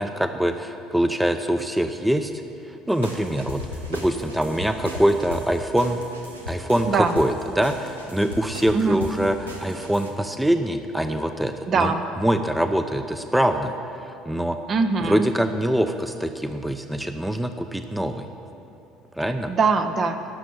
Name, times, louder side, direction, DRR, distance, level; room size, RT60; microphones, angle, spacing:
voice 1, 0.0-2.3 2.7-6.0 6.5-14.6 15.1-18.2 19.2-19.5, right 1 dB, 5° right, 7 dB, 0.7 m, -24 dB
sound 1, 2.9-10.1, left 1 dB, 90° right, 1.1 m, -37 dB
voice 2, 6.9-7.2 8.7-9.0 11.7-12.0 14.7-15.3 19.5-20.2, right 4 dB, 40° right, 7 dB, 1.0 m, -22 dB
12.5 x 7.1 x 9.5 m, 2.8 s
figure-of-eight pair, 60°, 0 cm